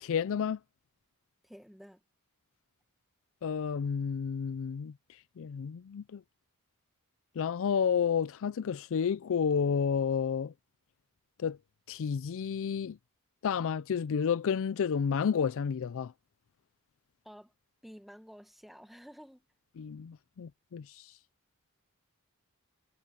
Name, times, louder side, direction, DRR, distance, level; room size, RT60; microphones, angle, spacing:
voice 1, 0.0-0.6 3.4-4.9 5.4-6.2 7.4-10.5 11.4-11.6 11.9-13.0 13.4-16.1 19.8-21.1, left 7 dB, 60° left, 0.4 m, -31 dB
voice 2, 1.4-2.0 17.2-17.5 17.8-19.5, equal, ahead, 1.5 m, -51 dB
head